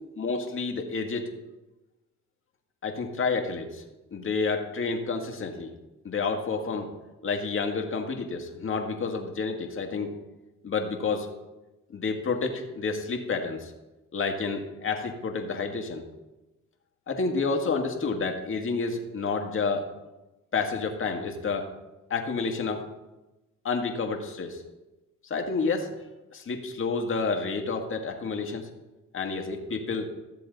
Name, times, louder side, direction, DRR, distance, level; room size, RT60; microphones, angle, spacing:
voice 1, 0.2-1.3 2.8-3.8 4.1-5.7 6.0-6.9 7.2-10.1 10.6-11.3 11.9-13.7 14.1-16.0 17.1-19.9 20.5-21.7 22.1-22.9 23.6-24.6 25.3-25.9 26.3-28.7 29.1-30.1, left 4 dB, 45° left, 3 dB, 1.8 m, -29 dB
14.0 x 7.5 x 3.9 m, 1.0 s
cardioid pair, 90°, 30 cm